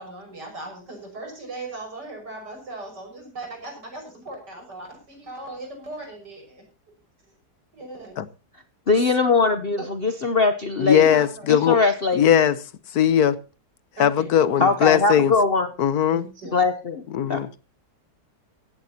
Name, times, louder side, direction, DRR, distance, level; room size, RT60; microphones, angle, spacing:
voice 1, 0.0-6.6 7.7-8.1 9.8-10.2 11.0-11.6 14.0-14.7 16.1-16.6, right 2 dB, 85° right, 3 dB, 6.6 m, -38 dB
voice 2, 8.9-11.1 11.5-12.3 14.6-15.7 16.5-17.0 17.3-17.4, left 4 dB, 40° left, 9 dB, 1.0 m, -21 dB
voice 3, 10.8-11.8 12.1-12.6 12.9-13.4 14.0-15.3 15.8-16.3 17.1-17.5, left 9 dB, 70° left, 16 dB, 1.4 m, -19 dB
17.0 x 14.5 x 2.9 m, 0.32 s
omnidirectional pair, 1.8 m